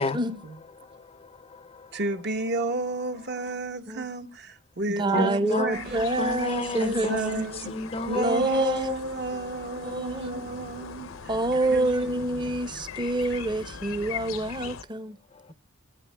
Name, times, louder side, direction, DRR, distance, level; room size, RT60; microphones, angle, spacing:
voice 1, 0.8-2.0 5.1-5.7 6.2-8.4 9.3-9.5 9.9-10.0 10.4-10.5 10.8-11.2 15.3-15.5, left 2 dB, 30° left, 0.5 m, -33 dB
voice 2, 1.9-6.2 6.7-7.8 8.0-12.1, right 2 dB, 55° right, 1.1 m, -31 dB
voice 3, 5.0-7.1 8.1-8.9 9.8-10.4 11.3-15.1, right 2 dB, 20° right, 0.7 m, -27 dB
sound 1, 5.7-14.8, left 6 dB, 70° left, 0.7 m, -41 dB
17.5 x 9.0 x 2.2 m
head